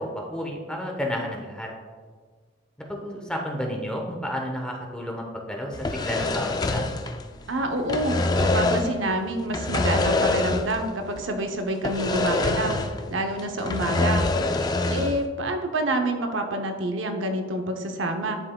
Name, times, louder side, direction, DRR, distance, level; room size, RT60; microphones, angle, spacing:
voice 1, 0.0-1.7 2.9-6.9, equal, 5° left, 0 dB, 0.7 m, -31 dB
sound 1, 5.7-7.5 7.8-9.0 9.5-10.9 11.2-11.3 11.8-13.1 13.4-15.2, left 2 dB, 20° left, 0.3 m, -25 dB
voice 2, 7.5-12.8 13.1-14.3 14.8-18.4, right 1 dB, 85° right, 5 dB, 0.7 m, -27 dB
10.5 x 4.5 x 2.2 m, 1.6 s
head